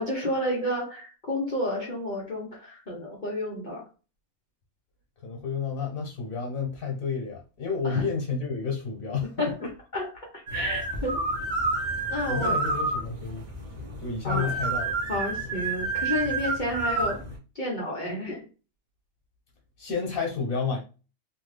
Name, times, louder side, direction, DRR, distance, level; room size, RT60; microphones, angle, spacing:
voice 1, 0.0-3.8 7.8-8.0 9.4-10.1 10.5-11.2 12.1-12.7 14.2-14.5 15.1-17.2 17.5-18.4, left 1 dB, 40° left, 0.9 m, -30 dB
voice 2, 5.2-9.7 12.3-13.4 14.0-15.0 19.8-20.8, left 5 dB, 85° left, 1.3 m, -30 dB
sound 1, 10.5-17.4, right 3 dB, 40° right, 0.7 m, -29 dB
3.0 x 2.4 x 3.2 m
omnidirectional pair, 1.4 m